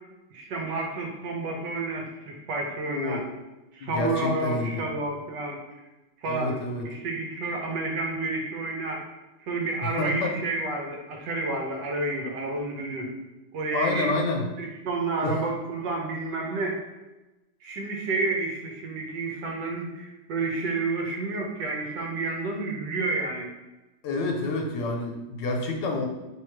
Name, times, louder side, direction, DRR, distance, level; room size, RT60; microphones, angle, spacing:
voice 1, 0.3-3.2 3.7-5.8 6.2-6.6 6.8-9.0 9.5-13.1 13.5-14.1 14.6-16.8 17.6-23.5, right 3 dB, 70° right, 1 dB, 1.3 m, -30 dB
voice 2, 2.8-3.2 3.8-4.8 6.2-6.8 10.0-10.4 13.7-14.4 15.2-15.4 24.0-26.1, left 2 dB, 70° left, 2 dB, 1.3 m, -28 dB
3.7 x 2.9 x 4.5 m, 1.1 s
omnidirectional pair, 2.1 m